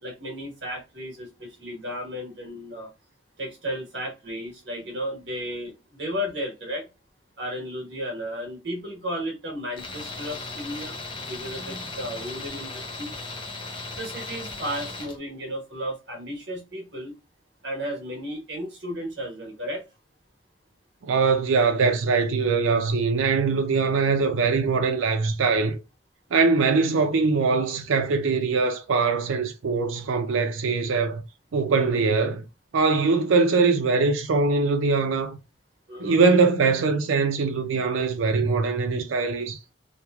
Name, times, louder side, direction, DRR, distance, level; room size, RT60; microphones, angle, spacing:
voice 1, 0.0-2.9 3.4-6.9 7.4-11.0 11.3-13.1 13.9-17.1 17.6-19.8 35.9-36.2, equal, 60° right, 1.2 m, -34 dB
Tools, 9.8-15.2, left 3 dB, 25° left, 0.5 m, -36 dB
voice 2, 21.0-25.8 26.3-31.2 31.5-32.4 32.7-35.4 36.0-39.6, right 4 dB, 90° right, 0.5 m, -22 dB
3.0 x 2.1 x 2.3 m
head